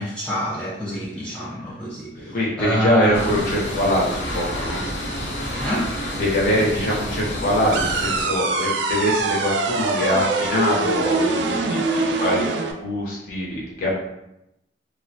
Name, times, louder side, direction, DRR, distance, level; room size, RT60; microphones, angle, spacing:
voice 1, 0.0-3.4 5.6-5.9, equal, 5° left, -7 dB, 0.3 m, -26 dB
voice 2, 2.2-4.8 6.2-12.5 12.8-14.0, left 1 dB, 50° left, -5 dB, 0.7 m, -23 dB
sound 1, 3.1-8.2, equal, 85° left, 0.8 m, -29 dB
sound 2, 7.7-12.7, right 3 dB, 75° right, 0.3 m, -23 dB
3.1 x 2.1 x 2.6 m, 0.86 s
head